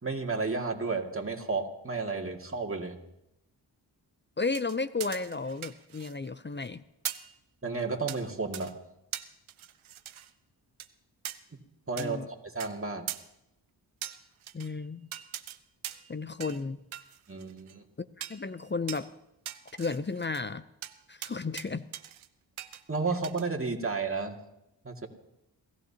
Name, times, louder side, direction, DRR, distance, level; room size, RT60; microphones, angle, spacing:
voice 1, 0.0-3.0 7.6-8.8 11.9-12.2 12.4-13.1 17.3-17.8 22.9-24.4 24.8-25.1, right 4 dB, 25° right, 1 dB, 2.3 m, -32 dB
voice 2, 4.4-6.8 12.0-12.3 14.5-15.1 16.1-16.8 18.0-19.1 19.8-20.6 21.1-21.9, left 4 dB, 25° left, 13 dB, 0.6 m, -33 dB
sound 1, 4.5-6.3 6.6-6.7 7.1-7.3 8.1-8.2 8.5-8.7 9.1-10.3 10.8-10.9 11.3-11.4 12.0-12.1 12.6-12.7 13.1-13.2 14.0-14.7 15.1-15.6 15.8-16.1 16.4-16.6 16.9-17.8 18.2-18.4 18.9-19.0 19.5-20.4 20.8-20.9 21.2-21.7 21.9-22.3 22.6-22.8 23.2-23.5, right 11 dB, 80° right, 0.8 m, -40 dB
27.5 x 14.5 x 2.9 m, 0.86 s
cardioid pair, 45°, 47 cm